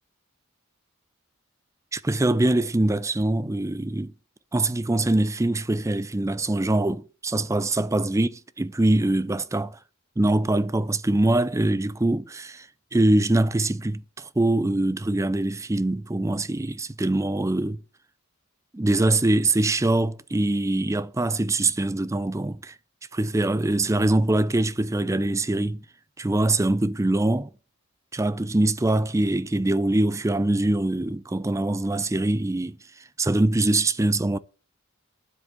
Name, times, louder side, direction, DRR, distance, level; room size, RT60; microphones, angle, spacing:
voice 1, 1.9-4.1 4.5-9.8 10.2-12.7 12.9-17.8 18.7-22.7 23.1-25.8 26.2-27.5 28.1-32.8 33.2-34.4, right 2 dB, 15° right, 0.5 m, -23 dB
9.8 x 8.0 x 7.7 m
head